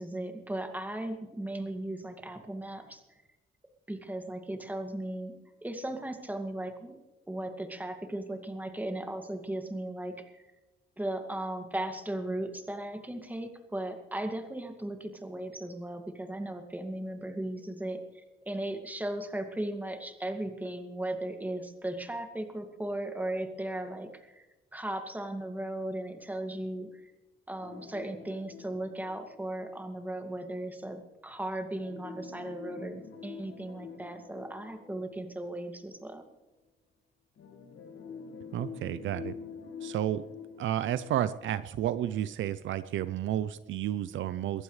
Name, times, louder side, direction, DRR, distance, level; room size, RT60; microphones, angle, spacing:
voice 1, 0.0-3.0 3.9-5.3 5.6-7.0 7.3-10.4 11.0-24.5 24.7-27.1 27.5-36.2, right 1 dB, 10° right, 5 dB, 2.2 m, -37 dB
sound 1, 27.6-30.3 31.8-36.1 37.4-42.3 42.6-42.7 43.3-43.4, left 6 dB, 70° left, 2.0 m, -47 dB
voice 2, 38.5-39.3 39.8-40.2 40.6-44.6, right 11 dB, 75° right, 14 dB, 0.6 m, -31 dB
22.5 x 15.0 x 3.3 m, 1.1 s
cardioid pair, 90°, 20 cm